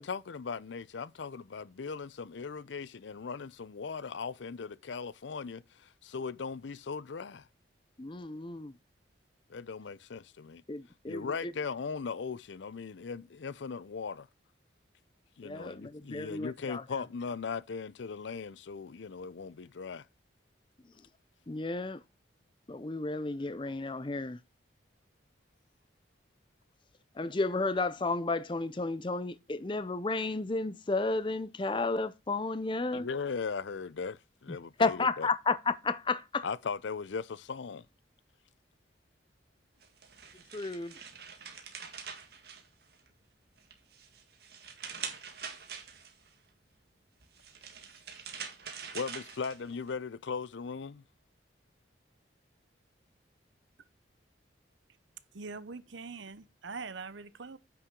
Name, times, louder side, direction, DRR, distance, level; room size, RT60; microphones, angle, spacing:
voice 1, 0.0-7.5 9.5-10.6 11.1-14.3 15.4-20.1 32.9-35.3 36.4-37.9 48.9-51.0, left 5 dB, 70° left, 0.5 m, -38 dB
voice 2, 8.0-8.7 10.7-11.5 15.4-16.8 21.5-22.0 22.7-24.4 27.2-33.1 34.8-36.4 40.5-40.9, left 3 dB, 25° left, 0.5 m, -32 dB
sound 1, 39.8-43.2 43.6-46.3 47.2-49.9, right 6 dB, 55° right, 1.8 m, -45 dB
voice 3, 55.3-57.6, right 4 dB, 75° right, 0.8 m, -43 dB
9.5 x 5.9 x 3.7 m
head